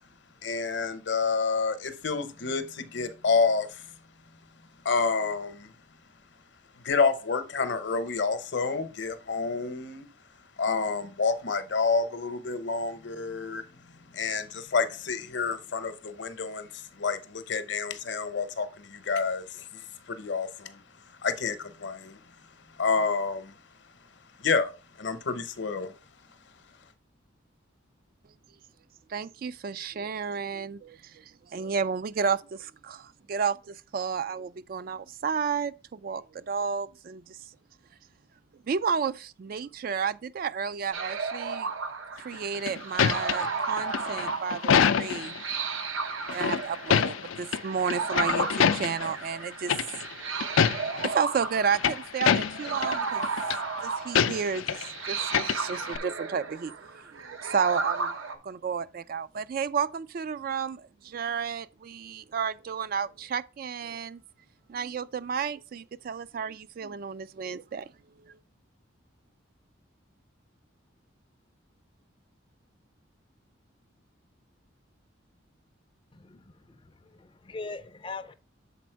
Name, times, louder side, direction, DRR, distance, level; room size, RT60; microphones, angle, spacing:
voice 1, 0.4-3.7 4.8-5.7 6.8-10.1 10.6-13.6 14.1-19.8 20.1-20.8 21.2-22.2 22.8-23.5 24.4-24.7 25.0-25.9, left 4 dB, 60° left, 0.8 m, -28 dB
voice 2, 29.1-31.2 31.5-37.4 38.7-41.7 42.2-45.4 46.3-49.7 50.5-50.6 51.0-53.3 53.8-58.1 58.4-64.2 64.7-67.9, right 6 dB, 45° right, 0.3 m, -32 dB
sound 1, 40.9-58.3, right 4 dB, 85° right, 0.9 m, -34 dB
sound 2, 42.3-45.4 46.3-47.6 47.9-49.1 49.7-50.1 50.4-51.1 51.5-53.0 53.2-53.6 54.1-54.9 55.2-56.0, left 7 dB, 85° left, 0.4 m, -26 dB
voice 3, 76.1-78.3, left 3 dB, 25° left, 0.4 m, -41 dB
7.2 x 4.2 x 4.5 m
head